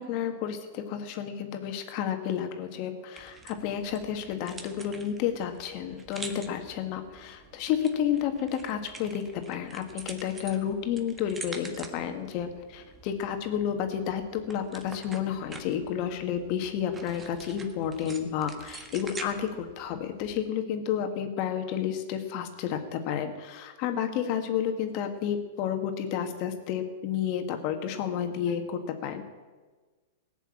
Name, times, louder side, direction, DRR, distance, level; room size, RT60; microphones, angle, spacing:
voice 1, 0.0-29.3, left 9 dB, 50° left, 6 dB, 2.0 m, -31 dB
sound 1, 3.2-20.5, right 3 dB, 15° right, 1.5 m, -47 dB
18.0 x 7.1 x 8.7 m, 1.3 s
hypercardioid pair, 115°, 0 cm